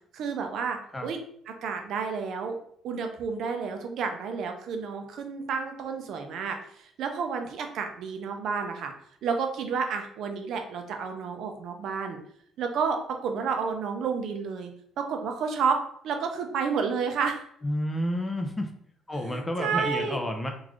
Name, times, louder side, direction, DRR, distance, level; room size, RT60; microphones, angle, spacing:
voice 1, 0.1-1.2 1.5-2.6 2.8-8.9 9.2-12.2 12.6-14.7 15.0-17.4 19.2-20.2, right 5 dB, 60° right, 5 dB, 0.5 m, -30 dB
voice 2, 17.6-18.7 19.1-20.5, left 1 dB, 15° left, 4 dB, 0.4 m, -30 dB
3.8 x 2.4 x 3.0 m, 0.65 s
cardioid pair, 150°, 0 cm